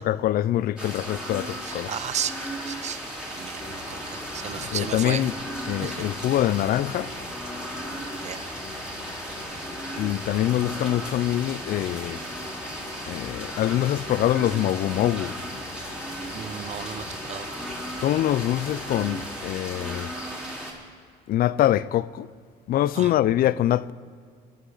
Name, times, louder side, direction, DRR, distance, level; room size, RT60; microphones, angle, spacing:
voice 1, 0.0-1.9 4.6-5.4 5.7-7.1 10.0-12.2 13.1-15.4 18.0-20.1 21.3-22.3 22.7-23.9, left 13 dB, 60° left, 0.5 m, -24 dB
sound 1, 0.8-20.7, right 1 dB, 5° right, 3.9 m, -36 dB
voice 2, 1.7-3.0 3.4-5.2 5.8-5.9 8.2-8.5 16.3-17.0 17.3-17.5 23.0-23.1, right 8 dB, 40° right, 0.8 m, -34 dB
sound 2, 3.6-19.6, left 4 dB, 30° left, 1.6 m, -44 dB
23.0 x 11.5 x 3.9 m
cardioid pair, 110°, 17 cm